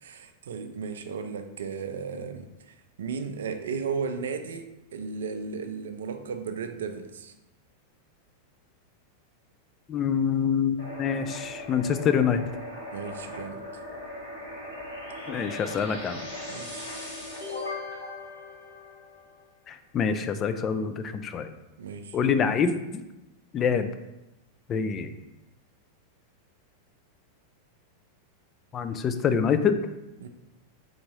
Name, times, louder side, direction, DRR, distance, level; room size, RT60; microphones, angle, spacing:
voice 1, 0.0-4.7 4.9-7.3 12.9-13.6 16.5-16.9 21.8-22.2 30.2-30.3, right 5 dB, 65° right, 8 dB, 0.3 m, -35 dB
voice 2, 9.9-12.4 15.3-16.2 19.7-21.5 22.1-23.0 23.5-23.9 24.7-25.1 28.7-29.8, left 7 dB, 30° left, 9 dB, 0.3 m, -26 dB
sound 1, 10.8-19.4, left 1 dB, 75° left, 1.4 m, -39 dB
3.8 x 3.4 x 3.1 m, 0.96 s
figure-of-eight pair, 90°, 0 cm